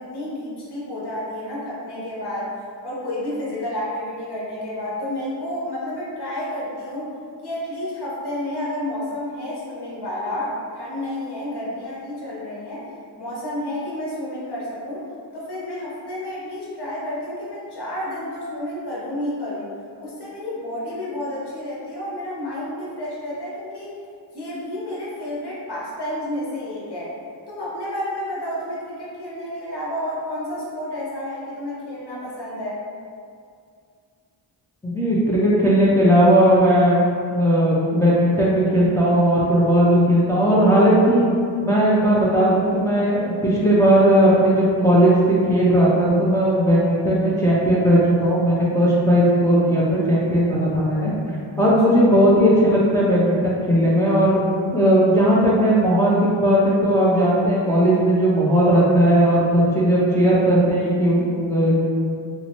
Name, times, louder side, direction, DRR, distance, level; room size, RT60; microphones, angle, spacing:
voice 1, 0.0-2.5 2.8-7.1 7.4-12.8 13.2-15.0 15.3-19.7 20.0-23.9 24.3-27.1 27.5-32.8, left 1 dB, 55° left, -7 dB, 1.0 m, -30 dB
voice 2, 34.8-37.0 37.3-41.3 41.6-45.1 45.5-51.1 51.6-54.4 54.7-61.8, equal, 5° left, -7 dB, 0.5 m, -17 dB
2.7 x 2.1 x 2.9 m, 2.3 s
cardioid pair, 55°, 46 cm